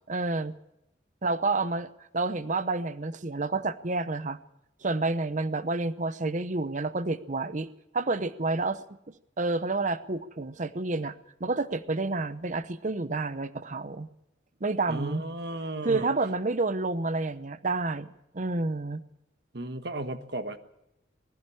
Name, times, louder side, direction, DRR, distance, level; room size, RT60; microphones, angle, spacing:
voice 1, 0.1-0.5 1.2-4.4 4.8-7.7 7.9-11.1 11.4-14.1 14.6-15.2 15.8-19.0, right 3 dB, 40° right, 13 dB, 0.8 m, -29 dB
voice 2, 14.9-16.1 19.5-20.6, right 2 dB, 60° right, 9 dB, 1.4 m, -34 dB
20.5 x 14.5 x 8.7 m, 0.86 s
head